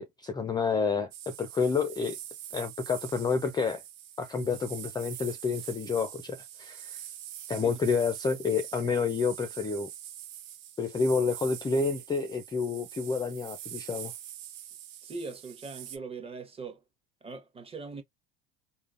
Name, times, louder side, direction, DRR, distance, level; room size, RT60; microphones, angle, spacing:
voice 1, 0.0-2.2 2.5-3.8 4.2-7.0 7.5-9.9 10.8-14.1, left 5 dB, 15° left, 0.4 m, -29 dB
sound 1, 1.1-16.0, right 11 dB, 75° right, 1.0 m, -44 dB
voice 2, 15.0-16.8 17.2-18.0, right 4 dB, 20° right, 0.9 m, -41 dB
3.6 x 2.1 x 2.4 m
supercardioid pair, 110°, 30 cm